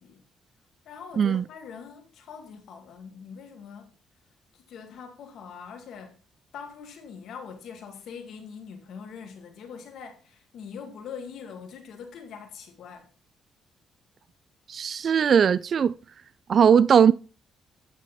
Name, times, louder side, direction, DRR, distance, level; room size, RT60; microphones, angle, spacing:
voice 1, 0.9-3.9 4.5-6.2 6.5-13.1, left 6 dB, 75° left, 2.2 m, -43 dB
voice 2, 14.7-16.0 16.5-17.1, right 7 dB, 50° right, 0.3 m, -19 dB
9.6 x 6.3 x 4.2 m
cardioid pair, 90°, 0 cm